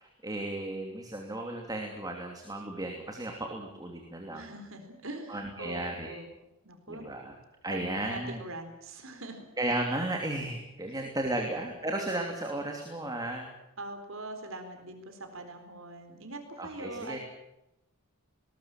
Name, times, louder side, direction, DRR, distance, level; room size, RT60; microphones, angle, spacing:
voice 1, 0.0-4.5 5.3-6.1 6.9-7.3 7.6-8.4 9.6-13.5 16.6-17.2, right 1 dB, 15° right, 2 dB, 2.8 m, -34 dB
voice 2, 4.3-6.3 6.6-7.1 7.7-9.4 13.8-17.2, right 2 dB, 60° right, 6 dB, 4.0 m, -42 dB
21.0 x 19.5 x 8.9 m, 0.90 s
head